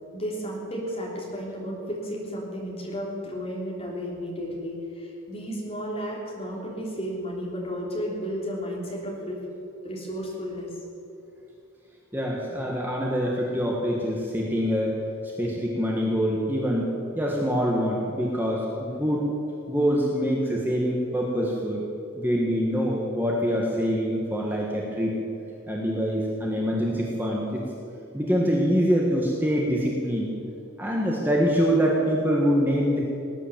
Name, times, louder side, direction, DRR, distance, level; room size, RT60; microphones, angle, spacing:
voice 1, 0.1-9.4 9.8-10.7, equal, 30° left, -3 dB, 3.4 m, -33 dB
voice 2, 12.1-19.2 19.7-21.8 22.1-25.2 25.7-27.7 28.1-30.3 30.8-33.0, equal, 10° right, -3 dB, 1.5 m, -25 dB
18.5 x 10.0 x 7.4 m, 2.8 s
head